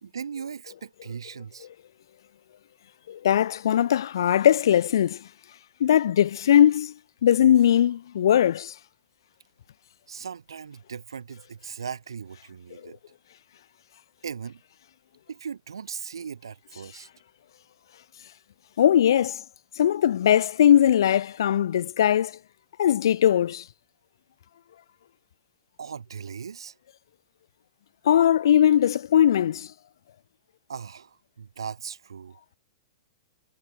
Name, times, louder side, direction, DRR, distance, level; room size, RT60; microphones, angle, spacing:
voice 1, 0.0-1.7 10.1-13.0 14.2-14.6 15.3-17.1 25.8-26.8 30.7-32.4, right 6 dB, 70° right, 1.5 m, -38 dB
voice 2, 3.1-5.3 5.8-6.9 7.2-8.7 12.8-12.9 18.8-19.4 19.8-22.4 22.8-23.6 28.0-29.7, left 10 dB, 60° left, 0.6 m, -20 dB
figure-of-eight pair, 105°, 2 cm